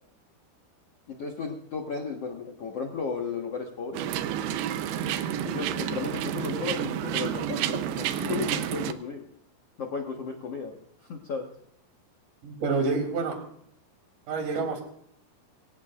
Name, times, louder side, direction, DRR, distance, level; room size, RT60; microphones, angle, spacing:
voice 1, 1.1-4.0 5.4-9.2 9.8-10.8 11.1-11.5, left 5 dB, 90° left, 1 dB, 1.3 m, -34 dB
sound 1, 3.9-8.9, right 10 dB, 75° right, 2.5 m, -30 dB
voice 2, 12.4-13.4 14.3-14.8, right 4 dB, 45° right, 3 dB, 4.4 m, -28 dB
22.5 x 17.5 x 2.5 m, 0.70 s
omnidirectional pair, 5.4 m